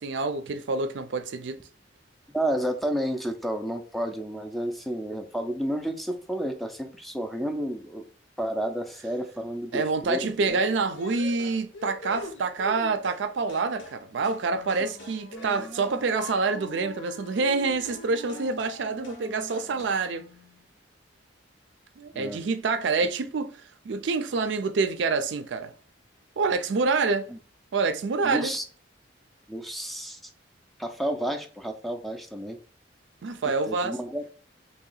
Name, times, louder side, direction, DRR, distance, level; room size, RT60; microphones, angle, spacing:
voice 1, 0.0-1.6 9.7-20.3 22.0-25.7 26.4-27.3 27.7-28.5 33.2-34.0, right 4 dB, 70° right, 0.4 m, -27 dB
voice 2, 2.3-8.0 8.4-10.6 22.1-22.4 27.3-27.4 28.2-28.6 29.5-30.2 30.8-32.6 33.7-34.3, right 1 dB, ahead, 0.4 m, -31 dB
sound 1, 10.5-13.2 13.5-14.0 14.2-14.4 14.7-16.8 17.8-18.0 18.3-18.8 19.0-19.2 19.5-20.0, left 1 dB, 80° left, 0.9 m, -42 dB
Wind instrument woodwind instrument, 14.4-20.7, equal, 55° left, 0.7 m, -45 dB
2.9 x 2.8 x 3.9 m
head